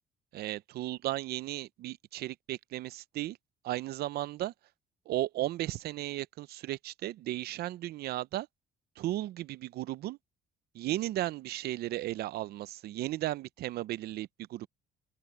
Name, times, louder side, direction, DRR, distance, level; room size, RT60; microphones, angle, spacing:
voice 1, 0.3-3.4 3.6-4.5 5.1-8.5 9.0-10.2 10.7-14.7, right 15 dB, 70° right, 0.6 m, -35 dB
open air
cardioid pair, 110°, 17 cm